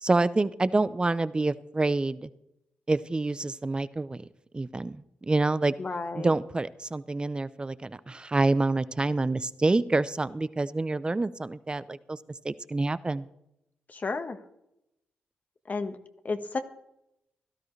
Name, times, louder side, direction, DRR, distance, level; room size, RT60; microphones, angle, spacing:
voice 1, 0.0-2.3 2.9-4.2 4.5-5.7 6.1-12.2 12.4-13.3, right 2 dB, 25° right, 16 dB, 0.7 m, -27 dB
voice 2, 5.8-6.3 13.9-14.4 15.7-16.0 16.2-16.6, left 4 dB, 45° left, 8 dB, 1.5 m, -32 dB
16.5 x 13.0 x 3.3 m, 0.82 s
cardioid pair, 60°, 4 cm